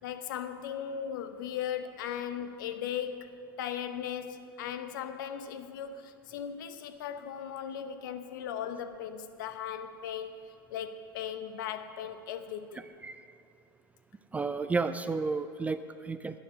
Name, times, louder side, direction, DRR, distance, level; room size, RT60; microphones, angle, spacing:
voice 1, 0.0-3.3 3.6-10.4 10.7-12.8, left 9 dB, 60° left, 10 dB, 0.9 m, -37 dB
voice 2, 12.7-13.3 14.3-16.4, right 4 dB, 10° right, 11 dB, 0.4 m, -32 dB
10.5 x 9.2 x 6.2 m, 2.4 s
hypercardioid pair, 95°, 12 cm